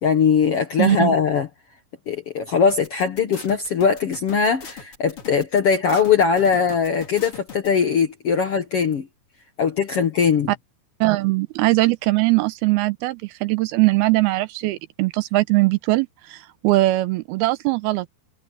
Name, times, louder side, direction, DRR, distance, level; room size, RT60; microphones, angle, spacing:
voice 1, 0.0-1.5 2.1-9.1 9.6-10.5, left 6 dB, 70° left, 1.4 m, -20 dB
voice 2, 0.8-1.2 11.0-18.1, right 20 dB, 80° right, 2.4 m, -20 dB
sound 1, 2.7-7.7, left 6 dB, 35° left, 3.3 m, -40 dB
omnidirectional pair, 4.8 m